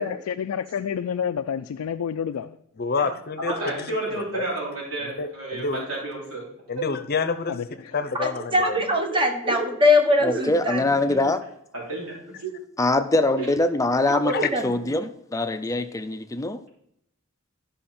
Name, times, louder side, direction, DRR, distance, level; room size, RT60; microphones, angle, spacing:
voice 1, 0.0-2.6 7.5-7.9, left 7 dB, 85° left, 0.4 m, -29 dB
voice 2, 2.8-4.5 5.0-5.9 6.7-7.5 7.9-8.8 14.3-14.5, left 4 dB, 45° left, 0.7 m, -28 dB
voice 3, 3.6-6.5 6.8-6.9 9.1-9.2 9.4-9.5 10.2-10.4 10.9-11.0 11.7-12.5 13.4-13.5, right 2 dB, 70° right, 3.2 m, -31 dB
voice 4, 8.2-10.9 14.0-14.7, left 2 dB, 25° right, 1.2 m, -22 dB
voice 5, 10.2-11.4 12.8-14.3 14.6-16.6, left 2 dB, 15° left, 0.5 m, -23 dB
12.0 x 5.6 x 4.3 m
head